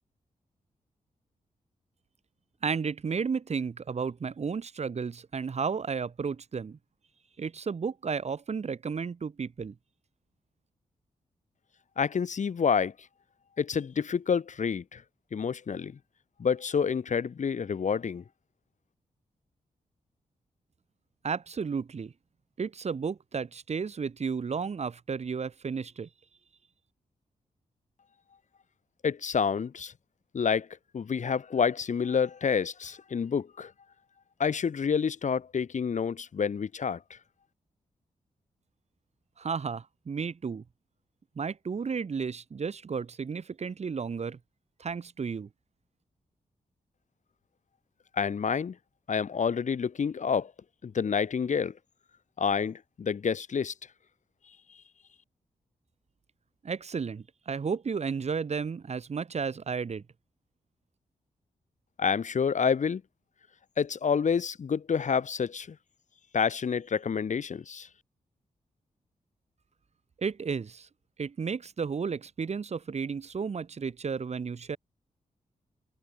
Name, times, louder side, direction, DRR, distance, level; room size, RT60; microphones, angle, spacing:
voice 1, 2.6-6.8 7.4-9.7 21.2-22.1 22.6-26.1 39.4-40.6 41.4-44.4 44.8-45.5 56.6-60.0 70.2-70.9 71.2-74.8, right 5 dB, 50° right, 5.8 m, -33 dB
voice 2, 12.0-12.9 13.6-15.0 15.3-16.0 16.4-18.2 29.0-29.9 30.3-30.7 30.9-33.7 34.4-37.2 48.2-48.7 49.1-50.5 50.8-51.7 52.4-53.7 62.0-63.0 63.8-65.7 66.3-67.9, left 6 dB, 60° left, 6.7 m, -28 dB
open air
wide cardioid pair, 125°, 14 cm